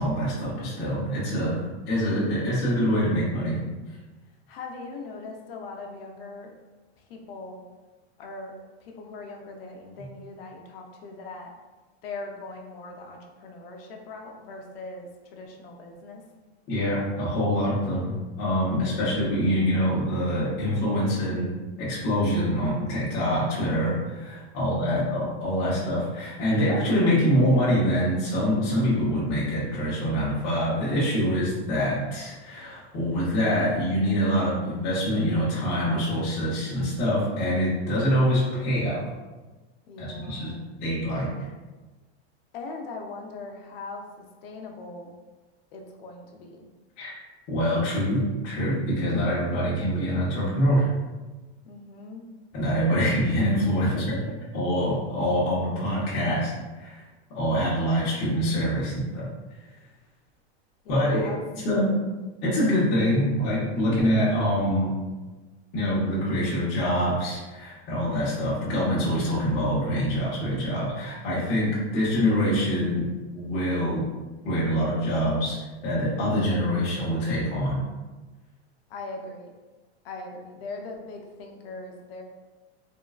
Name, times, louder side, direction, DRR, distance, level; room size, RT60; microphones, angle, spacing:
voice 1, 0.0-3.6 16.7-21.5 21.8-39.0 40.0-40.5 40.8-41.3 47.0-47.2 47.5-50.9 52.5-54.1 54.5-56.5 56.8-57.0 57.3-59.3 60.9-61.9 62.4-64.9 65.7-74.1 74.4-75.6 75.8-77.8, equal, 30° left, -8 dB, 0.8 m, -25 dB
voice 2, 4.5-6.6 7.1-7.6 8.2-8.5 8.8-11.5 12.0-16.2 24.6-25.2 39.9-40.7 42.5-45.1 45.7-46.6 51.6-52.3 53.9-54.2 60.8-61.4 78.9-79.5 80.0-82.2, left 3 dB, 60° left, 2 dB, 0.6 m, -40 dB
3.6 x 2.2 x 2.3 m, 1.2 s
supercardioid pair, 160°, 33 cm